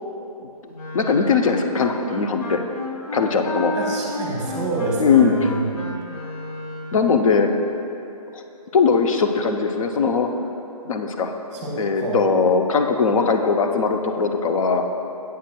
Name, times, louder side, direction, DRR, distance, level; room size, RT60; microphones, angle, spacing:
Wind instrument woodwind instrument, 0.7-7.1, left 1 dB, 80° left, 1.0 m, -32 dB
voice 1, 0.9-2.6 3.1-3.7 5.0-5.5 6.9-7.5 8.3-8.4 8.7-10.3 10.8-11.3 11.8-14.8, left 5 dB, 60° left, 5 dB, 0.6 m, -20 dB
voice 2, 3.8-5.6 11.5-12.2, right 2 dB, 20° right, -3 dB, 1.0 m, -27 dB
8.3 x 7.5 x 2.2 m, 3.0 s
hypercardioid pair, 165°, 20 cm